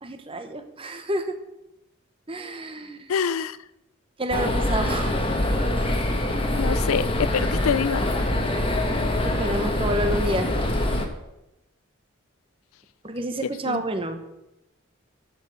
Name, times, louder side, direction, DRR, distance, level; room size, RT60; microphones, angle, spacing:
voice 1, 0.0-1.4 2.3-3.1 4.2-5.2 9.2-10.5 13.0-14.2, right 1 dB, 25° right, 7 dB, 1.0 m, -29 dB
voice 2, 3.1-3.6 6.5-8.0 13.7-13.8, left 7 dB, 85° left, 17 dB, 0.4 m, -25 dB
sound 1, 4.3-11.1, left 1 dB, 25° left, 1.1 m, -24 dB
12.0 x 5.4 x 6.5 m, 0.92 s
head